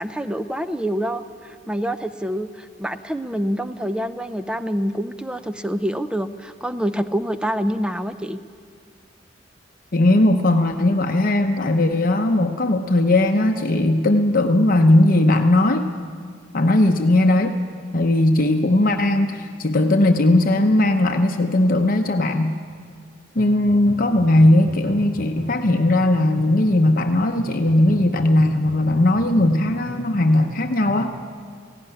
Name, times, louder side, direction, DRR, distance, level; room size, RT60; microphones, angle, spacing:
voice 1, 0.0-8.4, equal, 5° right, 11 dB, 0.6 m, -26 dB
voice 2, 9.9-15.9 16.5-17.6 17.9-22.6 23.3-31.1, left 1 dB, 50° left, 5 dB, 0.8 m, -18 dB
sound 1, 23.4-31.2, right 1 dB, 55° right, 2.6 m, -37 dB
17.5 x 15.5 x 10.0 m, 2.1 s
head